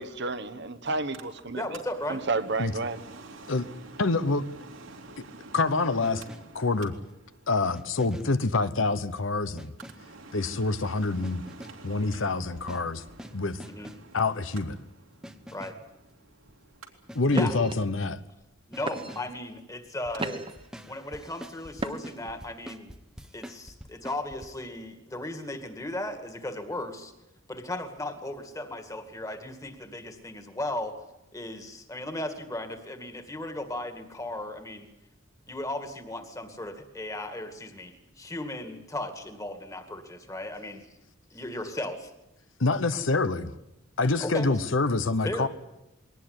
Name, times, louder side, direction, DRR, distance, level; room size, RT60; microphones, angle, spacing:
voice 1, 0.0-1.6 2.1-3.0, right 3 dB, 60° right, 10 dB, 1.2 m, -31 dB
Mechanical fan, 0.8-20.2 20.6-20.7, right 3 dB, 85° right, 3.0 m, -50 dB
voice 2, 1.5-2.2 13.7-13.9 15.5-15.7 17.3-17.6 18.7-20.4 20.9-22.9 23.3-27.1 27.5-30.9 31.3-34.9 35.5-40.9 41.3-42.1 44.2-44.5 45.2-45.5, left 1 dB, 15° left, 7 dB, 2.2 m, -36 dB
voice 3, 4.0-4.5 5.2-5.3 5.5-6.2 6.5-6.9 7.5-9.7 10.3-11.4 11.8-13.0 13.3-13.6 14.1-14.8 17.1-18.2 42.6-43.5 44.0-45.5, left 3 dB, 70° left, 13 dB, 0.9 m, -26 dB
sound 1, 6.0-6.7 7.7-8.5 9.6-10.2 11.2-11.9 12.6-14.2 15.2-15.9 17.1-17.6 18.7-19.4 20.1-24.5, equal, 5° right, 1.0 m, -46 dB
sound 2, 16.5-16.8 17.3-17.7 18.4-18.5 18.9-19.4 19.9-20.7 21.8-22.3, right 2 dB, 25° right, 1.3 m, -34 dB
21.5 x 18.5 x 9.6 m, 0.96 s
head